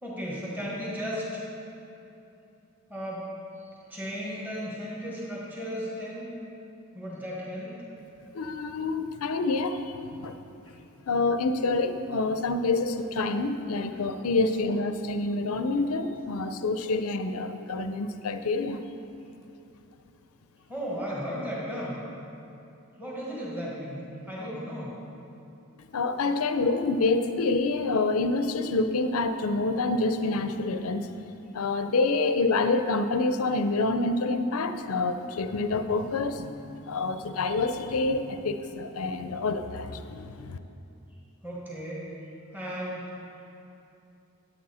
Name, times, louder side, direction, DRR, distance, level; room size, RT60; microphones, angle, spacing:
voice 1, 0.0-1.4 2.9-3.3 3.9-6.3 6.9-7.8 20.7-22.0 23.0-25.0 41.4-42.1 42.5-43.1, equal, 10° right, -6 dB, 1.4 m, -35 dB
voice 2, 8.3-10.4 11.1-18.8 25.9-31.1 31.5-40.6, left 3 dB, 75° left, 9 dB, 0.5 m, -27 dB
9.0 x 8.8 x 4.2 m, 2.7 s
head